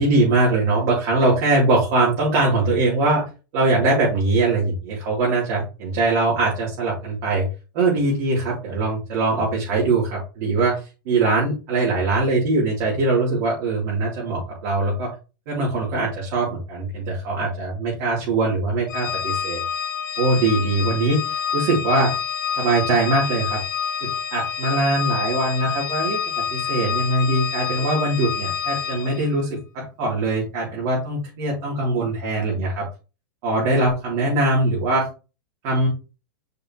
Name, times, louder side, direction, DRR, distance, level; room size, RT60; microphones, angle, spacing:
voice 1, 0.0-3.2 3.5-7.5 7.7-10.8 11.1-15.1 15.5-19.6 20.2-22.1 22.6-23.6 24.0-26.2 26.5-32.9 33.4-35.1 35.6-35.9, right 2 dB, 50° right, -7 dB, 4.0 m, -22 dB
Organ, 18.9-29.3, left 8 dB, 70° left, 0.9 m, -27 dB
6.7 x 5.4 x 3.3 m, 0.32 s
hypercardioid pair, 140°, 11 cm